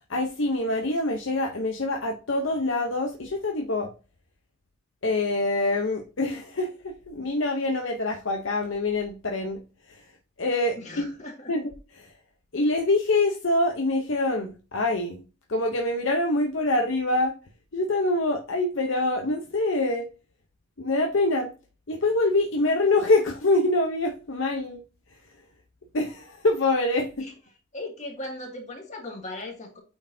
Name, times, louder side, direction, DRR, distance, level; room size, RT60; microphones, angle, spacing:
voice 1, 0.1-3.9 5.0-9.6 9.9-10.0 10.4-11.1 11.5-12.1 12.5-15.2 15.5-17.3 17.7-20.1 20.8-21.5 21.9-24.8 25.9-27.3, left 2 dB, 60° left, 0.8 m, -25 dB
voice 2, 10.8-11.5 27.2-27.3 27.7-29.8, left 1 dB, 35° left, 2.2 m, -38 dB
8.9 x 4.2 x 2.7 m
head